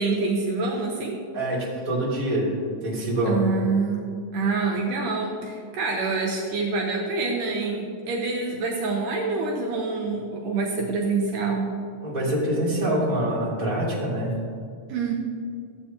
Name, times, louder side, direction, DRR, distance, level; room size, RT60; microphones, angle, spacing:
voice 1, 0.0-1.2 3.3-4.1 4.3-11.7 14.9-15.1, right 4 dB, 75° right, -1 dB, 2.3 m, -26 dB
voice 2, 1.3-2.5 2.8-3.4 12.0-14.3, right 1 dB, 15° right, -7 dB, 2.4 m, -25 dB
14.5 x 8.2 x 2.9 m, 2.3 s
omnidirectional pair, 4.1 m